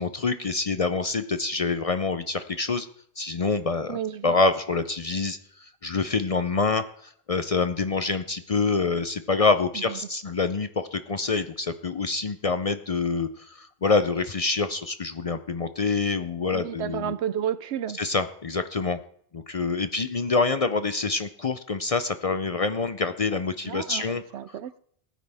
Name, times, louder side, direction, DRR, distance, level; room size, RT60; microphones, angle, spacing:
voice 1, 0.0-2.9 3.2-17.1 18.0-19.0 19.3-24.2, left 4 dB, 45° left, 10 dB, 0.5 m, -26 dB
voice 2, 3.9-4.4 9.7-10.0 16.5-18.0 23.6-24.8, right 9 dB, 85° right, 16 dB, 0.9 m, -32 dB
18.5 x 9.1 x 3.4 m, 0.64 s
omnidirectional pair, 1.1 m